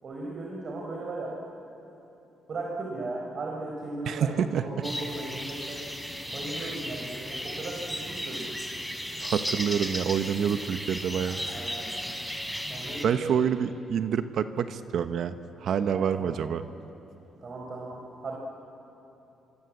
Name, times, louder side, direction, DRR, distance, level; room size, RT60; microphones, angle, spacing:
voice 1, 0.0-1.3 2.5-5.8 6.2-8.5 11.5-11.9 12.5-13.4 15.9-16.3 17.4-18.4, right 2 dB, 50° right, -1 dB, 4.6 m, -37 dB
voice 2, 4.1-4.6 6.6-6.7 9.2-11.4 13.0-15.4 15.6-16.6, right 8 dB, 65° right, 10 dB, 1.0 m, -27 dB
sound 1, 4.8-13.0, equal, ahead, 3.7 m, -35 dB
26.0 x 25.0 x 8.5 m, 3.0 s
cardioid pair, 90°, 0 cm